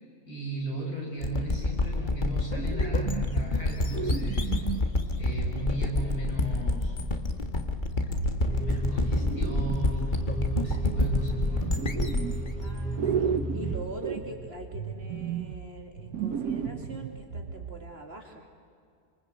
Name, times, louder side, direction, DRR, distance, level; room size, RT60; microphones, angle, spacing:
voice 1, 0.2-4.5 5.2-7.0 8.4-11.8, right 1 dB, 70° left, -1 dB, 6.7 m, -36 dB
sound 1, 1.2-13.8, left 2 dB, 30° left, 1.7 m, -28 dB
sound 2, 1.5-2.3 2.6-3.6 3.9-6.8 7.6-9.9 10.2-12.7 13.0-17.9, right 7 dB, 70° right, 1.4 m, -35 dB
voice 2, 5.3-5.6 12.6-18.5, right 2 dB, 40° right, 3 dB, 2.7 m, -43 dB
sound 3, 8.4-13.8, right 1 dB, 5° left, 2.6 m, -34 dB
26.0 x 25.5 x 8.0 m, 2.3 s
omnidirectional pair, 1.6 m